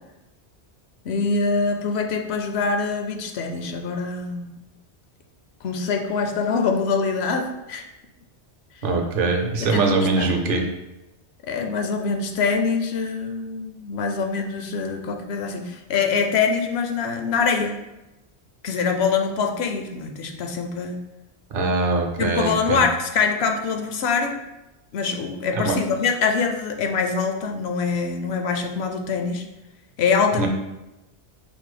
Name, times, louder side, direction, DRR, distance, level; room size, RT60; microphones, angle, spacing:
voice 1, 1.0-4.5 5.6-7.8 9.6-10.4 11.5-17.8 18.6-21.0 22.2-24.4 24.9-29.5 30.0-30.5, left 5 dB, 70° left, 4 dB, 0.8 m, -24 dB
voice 2, 8.8-10.6 21.5-22.8 25.5-25.8 30.4-30.5, right 3 dB, 55° right, 3 dB, 0.8 m, -22 dB
5.4 x 2.1 x 4.8 m, 0.96 s
omnidirectional pair, 1.1 m